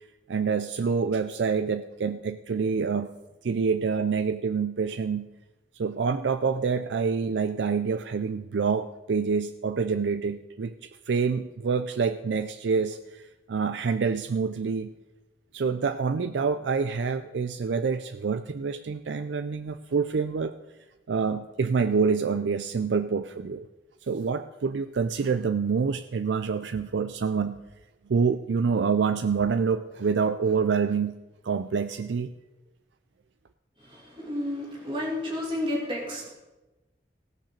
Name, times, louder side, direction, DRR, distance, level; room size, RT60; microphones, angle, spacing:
voice 1, 0.3-3.1 3.4-5.3 5.7-14.9 15.5-20.5 21.1-23.7 24.0-27.6 28.1-31.1 31.4-32.3, right 5 dB, 90° right, 10 dB, 0.4 m, -27 dB
voice 2, 33.9-36.3, left 1 dB, 30° right, -3 dB, 2.7 m, -31 dB
17.5 x 6.0 x 6.6 m, 1.1 s
head